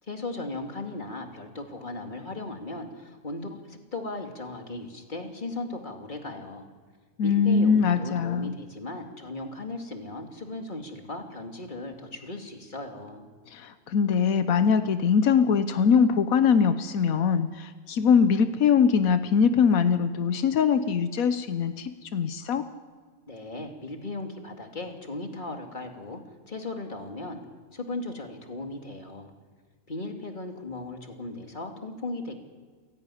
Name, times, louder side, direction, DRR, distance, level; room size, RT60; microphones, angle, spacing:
voice 1, 0.0-6.7 7.2-13.2 23.3-26.2 26.5-27.4 27.7-29.3 29.9-32.3, left 2 dB, 35° left, 3 dB, 2.5 m, -37 dB
voice 2, 7.2-8.6 13.5-22.6, left 6 dB, 85° left, 10 dB, 1.3 m, -22 dB
28.5 x 10.5 x 9.9 m, 1.5 s
omnidirectional pair, 1.4 m